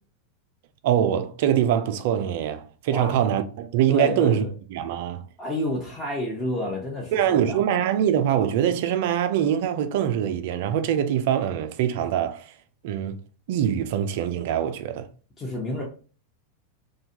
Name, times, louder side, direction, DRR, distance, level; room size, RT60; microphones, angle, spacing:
voice 1, 0.8-5.2 7.1-12.5 12.8-13.2 13.5-15.1, right 10 dB, 60° right, 0.3 m, -23 dB
voice 2, 2.9-3.2 3.9-4.5 5.4-7.6 15.4-15.8, left 1 dB, 25° left, 0.8 m, -29 dB
2.7 x 2.2 x 2.8 m
hypercardioid pair, 95°, 0 cm